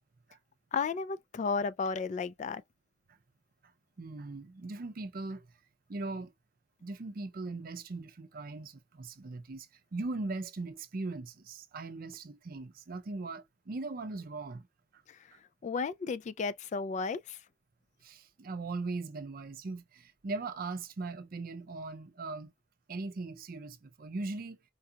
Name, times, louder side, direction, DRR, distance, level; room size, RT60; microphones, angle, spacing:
voice 1, 0.7-2.6 15.1-15.2 15.6-17.4, left 5 dB, 40° left, 0.3 m, -33 dB
voice 2, 4.0-5.5 5.9-6.3 6.8-9.7 9.9-14.7 18.0-22.5 22.9-24.6, right 3 dB, 55° right, 0.5 m, -39 dB
4.5 x 2.4 x 2.7 m
head